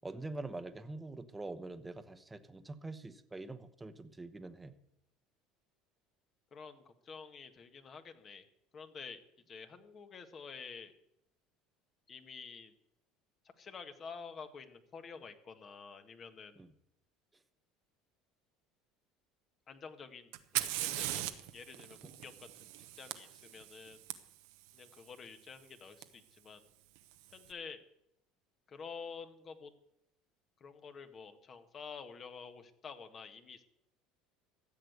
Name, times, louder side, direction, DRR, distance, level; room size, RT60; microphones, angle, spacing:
voice 1, 0.0-4.7 16.6-16.7, right 2 dB, 15° right, 8 dB, 1.1 m, -44 dB
voice 2, 6.5-8.4 8.7-9.2 9.5-11.0 12.1-12.7 13.6-16.6 19.7-21.2 21.5-22.5 22.9-24.0 24.7-26.6 27.3-27.8 28.7-29.7 30.6-33.6, left 5 dB, 40° left, 8 dB, 1.6 m, -49 dB
Fire, 20.3-24.1 26.0-26.1 27.0-27.4, right 15 dB, 70° right, 1.0 m, -39 dB
14.0 x 8.0 x 8.0 m, 0.79 s
hypercardioid pair, 75°, 0 cm